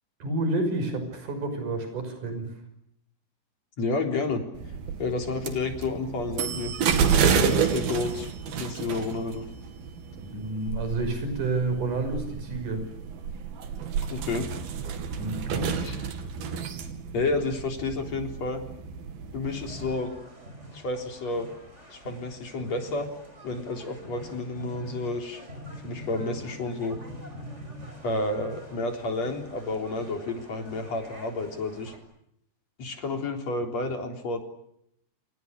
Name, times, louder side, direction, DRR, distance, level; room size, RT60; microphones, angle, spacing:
voice 1, 0.2-2.5 10.2-12.8 15.2-15.7, right 2 dB, 55° right, 7 dB, 7.4 m, -29 dB
voice 2, 3.8-6.7 7.4-9.5 14.1-14.5 15.8-15.9 17.1-18.6 19.3-20.1 20.7-21.5 21.9-23.1 23.4-25.4 25.8-27.0 28.0-31.9 32.8-34.4, left 3 dB, 45° left, 4 dB, 4.7 m, -30 dB
sound 1, 4.6-20.0, right 6 dB, 70° right, 4.1 m, -30 dB
sound 2, 19.4-32.0, equal, 15° right, 6.4 m, -45 dB
28.5 x 27.5 x 6.5 m, 0.73 s
omnidirectional pair, 4.4 m